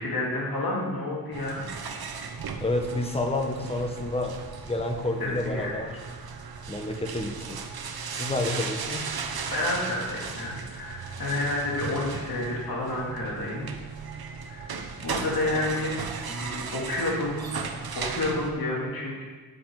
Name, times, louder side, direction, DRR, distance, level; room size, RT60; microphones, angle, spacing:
voice 1, 0.0-1.6 5.2-5.7 9.3-13.7 14.5-14.7 15.0-16.0 16.3-17.6 18.0-19.2, left 2 dB, 70° left, -4 dB, 2.7 m, -30 dB
sound 1, 1.3-18.5, right 5 dB, 90° right, 0.9 m, -36 dB
voice 2, 2.6-4.4 4.6-6.0 6.7-7.6 8.1-9.1, left 2 dB, 15° left, 3 dB, 1.1 m, -29 dB
9.7 x 8.2 x 4.8 m, 1.3 s
wide cardioid pair, 150°, 36 cm